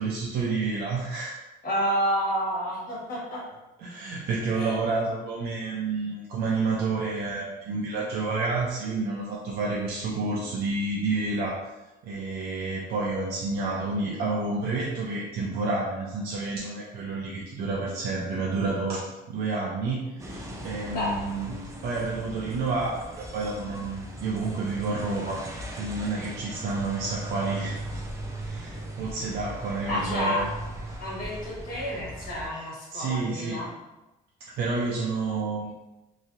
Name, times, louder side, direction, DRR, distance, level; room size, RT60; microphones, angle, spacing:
voice 1, 0.0-1.4 3.8-11.7 12.0-25.4 25.8-28.0 28.3-30.4 32.9-33.7 34.4-35.7, right 3 dB, 65° right, -4 dB, 0.5 m, -29 dB
voice 2, 1.6-3.4 4.5-4.8 20.9-21.2 29.9-30.5 31.0-33.7, equal, 60° left, -6 dB, 1.5 m, -29 dB
sound 1, 20.2-32.5, right 1 dB, 15° right, 0.5 m, -38 dB
3.0 x 2.6 x 2.5 m, 1.0 s
cardioid pair, 110°, 17 cm